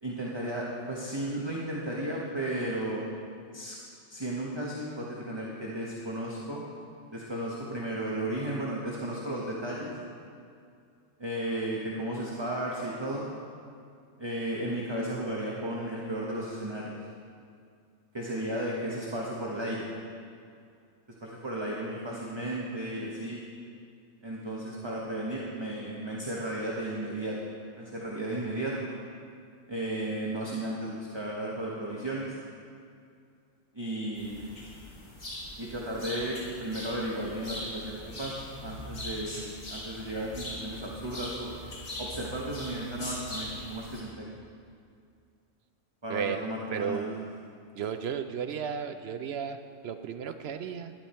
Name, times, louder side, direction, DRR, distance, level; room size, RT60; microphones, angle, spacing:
voice 1, 0.0-3.0 3.5-3.8 4.1-6.6 7.1-9.9 11.2-13.3 14.2-16.9 18.1-19.9 21.2-23.4 24.2-27.4 27.7-28.9 29.7-32.4 33.7-34.5 35.6-41.6 42.0-44.3 46.0-47.1, right 1 dB, 20° right, -4 dB, 1.2 m, -34 dB
sound 1, 34.1-44.0, left 1 dB, 70° left, 3.1 m, -41 dB
voice 2, 46.7-47.2 47.8-50.9, right 7 dB, 65° right, 9 dB, 0.7 m, -34 dB
12.0 x 11.0 x 4.3 m, 2.3 s
omnidirectional pair, 1.3 m